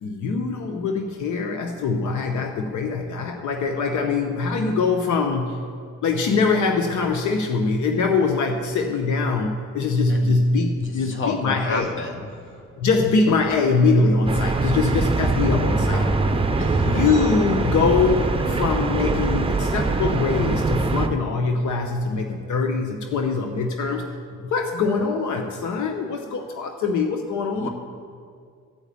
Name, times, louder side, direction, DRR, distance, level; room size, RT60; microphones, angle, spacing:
voice 1, 0.0-5.6 6.0-11.9 12.8-16.2 16.8-27.7, left 4 dB, 75° left, 4 dB, 0.9 m, -23 dB
voice 2, 10.1-10.4 11.1-12.2 16.6-17.0 27.6-27.7, left 3 dB, 40° left, 4 dB, 1.5 m, -30 dB
Conversation, 10.8-20.3, equal, 15° left, 3.3 m, -43 dB
sound 1, 14.3-21.1, right 3 dB, 20° right, 0.8 m, -23 dB
13.5 x 5.0 x 8.3 m, 2.2 s
cardioid pair, 90°, 30 cm